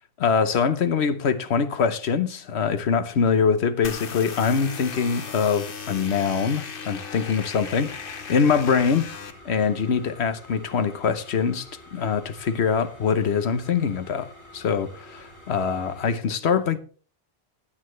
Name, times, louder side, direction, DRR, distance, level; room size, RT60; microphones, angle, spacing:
voice 1, 0.2-9.1 9.4-16.8, left 6 dB, 80° left, 1.2 m, -23 dB
sound 1, 3.8-9.3, left 6 dB, 60° left, 1.2 m, -37 dB
sound 2, 7.7-16.1, left 1 dB, 65° right, 7.4 m, -48 dB
16.0 x 10.0 x 3.2 m
omnidirectional pair, 1.1 m